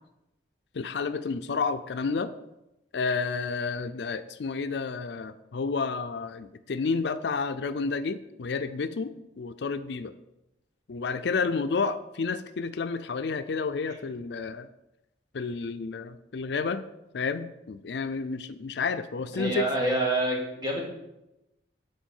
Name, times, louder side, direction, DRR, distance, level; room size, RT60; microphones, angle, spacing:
voice 1, 0.7-2.3 2.9-10.1 10.9-14.7 15.3-16.8 17.1-19.7, left 4 dB, 70° left, 11 dB, 0.4 m, -30 dB
voice 2, 19.4-20.8, right 1 dB, 20° right, -2 dB, 2.2 m, -27 dB
9.1 x 4.5 x 7.1 m, 0.92 s
head